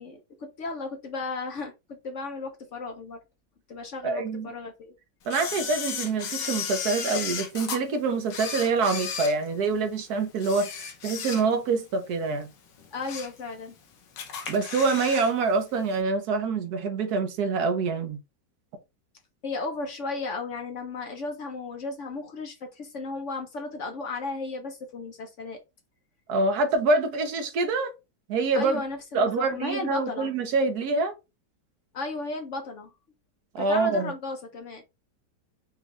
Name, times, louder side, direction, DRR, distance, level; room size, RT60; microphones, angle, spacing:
voice 1, 0.0-3.2 3.7-4.9 12.9-13.7 19.4-25.6 28.5-30.3 31.9-32.9 33.6-34.8, left 3 dB, 60° left, 0.8 m, -35 dB
voice 2, 4.0-4.5 5.3-12.5 14.5-18.2 26.3-27.9 28.3-28.8 29.1-31.1 33.5-34.1, right 4 dB, 65° right, 1.3 m, -26 dB
Camera, 5.3-7.8 8.3-9.9 10.4-11.8 12.1-12.3 12.8-13.4 13.7-13.8 14.2-15.3 15.6-15.7, left 7 dB, 85° left, 1.6 m, -34 dB
5.2 x 2.4 x 3.0 m
omnidirectional pair, 1.9 m